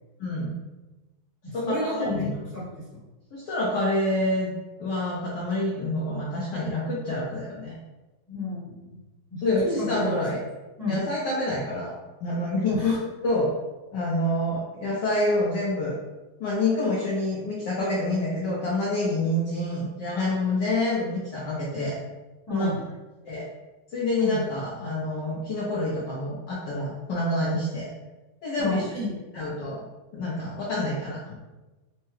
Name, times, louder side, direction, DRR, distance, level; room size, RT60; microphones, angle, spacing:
voice 1, 0.2-0.5 1.5-2.3 3.3-4.5 4.8-7.8 9.4-10.4 10.9-11.9 12.2-12.9 13.2-13.5 13.9-15.9 16.4-22.0 22.5-22.7 23.2-23.5 23.9-27.9 28.4-28.8 29.3-29.8 30.1-31.4, left 1 dB, 70° left, -5 dB, 1.2 m, -27 dB
voice 2, 1.4-3.0 8.3-9.0 9.3-10.1 10.8-11.0 12.7-13.0 22.5-22.8 24.2-24.4 28.6-29.1, left 2 dB, 15° left, -9 dB, 0.8 m, -31 dB
4.6 x 2.1 x 3.0 m, 1.1 s
omnidirectional pair, 2.2 m